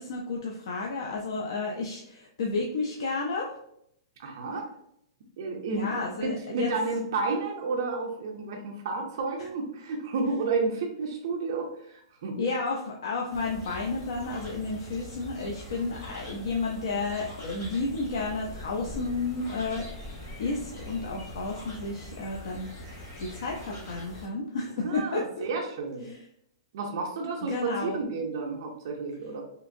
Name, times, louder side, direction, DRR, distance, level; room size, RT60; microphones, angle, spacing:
voice 1, 0.0-3.5 5.7-6.7 9.4-9.5 12.4-19.8 20.4-25.5 26.0-26.2 27.4-28.0, left 3 dB, 60° left, 0 dB, 0.4 m, -32 dB
voice 2, 4.2-4.7 5.4-12.4 24.8-26.1 26.7-27.5 27.8-29.4, right 3 dB, 45° right, 0 dB, 0.4 m, -31 dB
sound 1, 13.3-24.3, left 1 dB, 35° left, 1.0 m, -43 dB
2.8 x 2.5 x 2.5 m, 0.74 s
hypercardioid pair, 180°, 3 cm